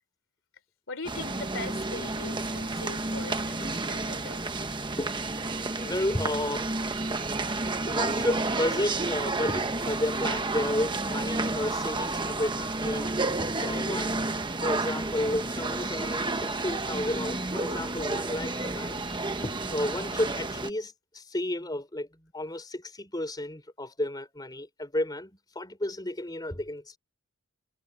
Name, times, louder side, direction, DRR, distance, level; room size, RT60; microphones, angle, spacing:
voice 1, 0.9-4.5, left 3 dB, 60° left, 3.6 m, -40 dB
sound 1, 1.0-20.7, right 2 dB, 20° right, 1.1 m, -31 dB
voice 2, 4.9-6.8 7.2-7.3 7.9-14.2 14.6-19.1 19.4-27.0, left 1 dB, 20° left, 3.4 m, -32 dB
head